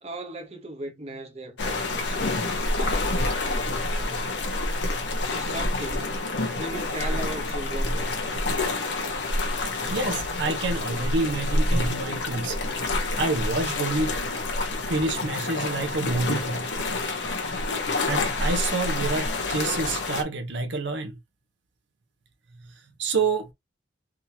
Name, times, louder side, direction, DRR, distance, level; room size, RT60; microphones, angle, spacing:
voice 1, 0.0-4.2 5.3-6.2 6.6-8.3, right 1 dB, 35° right, 0.8 m, -38 dB
sound 1, 1.6-20.2, left 2 dB, 70° left, 0.9 m, -28 dB
voice 2, 9.9-12.6 13.2-14.2 14.9-16.7 18.1-21.2 23.0-23.5, right 3 dB, 70° right, 0.7 m, -28 dB
3.6 x 2.8 x 2.7 m
head